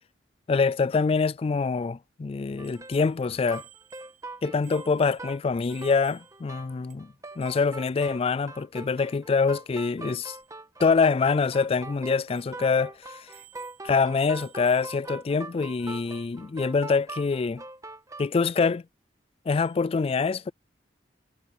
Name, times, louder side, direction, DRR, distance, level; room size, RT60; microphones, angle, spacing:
voice 1, 0.5-3.6 4.4-10.4 10.8-12.9 13.8-17.6 18.2-18.8 19.5-20.5, left 4 dB, 35° left, 0.3 m, -25 dB
sound 1, 2.6-18.3, right 2 dB, 20° right, 1.6 m, -43 dB
Bicycle bell, 2.6-6.6 6.9-7.0 7.2-7.8 10.0-10.1 10.3-10.5 11.1-11.2 11.6-11.7 12.3-12.7 13.3-14.0 14.3-15.1 17.0-17.1 19.5-19.9, right 13 dB, 55° right, 4.6 m, -55 dB
head